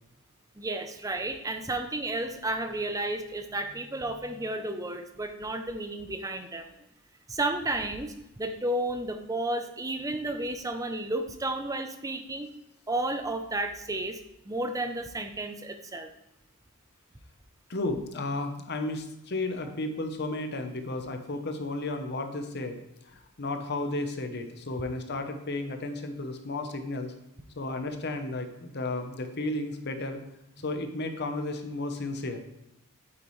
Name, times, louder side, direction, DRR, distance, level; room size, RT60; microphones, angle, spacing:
voice 1, 0.6-6.7 7.3-12.5 12.9-14.2 14.4-16.1, right 2 dB, 15° right, 7 dB, 0.7 m, -32 dB
voice 2, 17.7-27.1 27.6-30.2 30.6-32.4, left 2 dB, 50° left, 6 dB, 0.9 m, -33 dB
8.8 x 8.3 x 3.2 m, 0.88 s
head